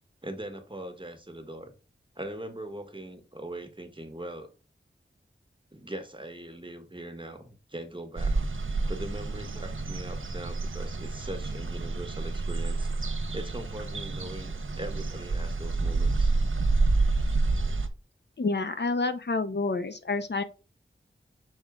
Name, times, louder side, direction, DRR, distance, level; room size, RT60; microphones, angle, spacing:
voice 1, 0.2-1.7 2.1-4.5 5.7-8.4 8.9-12.9 13.3-16.3, right 1 dB, 25° right, 5 dB, 1.5 m, -41 dB
sound 1, 8.2-17.9, right 3 dB, 90° right, 1.0 m, -28 dB
voice 2, 18.4-20.4, left 3 dB, 60° left, 10 dB, 0.7 m, -28 dB
6.4 x 4.6 x 3.6 m, 0.31 s
wide cardioid pair, 65°, 20 cm